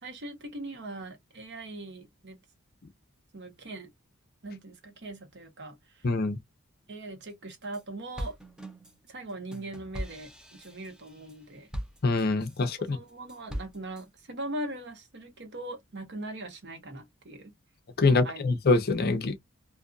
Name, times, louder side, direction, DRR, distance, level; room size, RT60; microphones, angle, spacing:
voice 1, 0.0-2.4 3.3-3.9 4.4-6.1 6.9-8.4 9.1-11.7 12.9-17.5 18.1-18.4, right 1 dB, 55° right, 1.0 m, -40 dB
voice 2, 6.0-6.4 12.0-13.0 18.0-19.4, left 3 dB, 45° left, 0.6 m, -24 dB
sound 1, 7.3-7.8 8.2-12.7 13.1-14.0, equal, 5° right, 0.6 m, -40 dB
2.6 x 2.5 x 2.3 m
head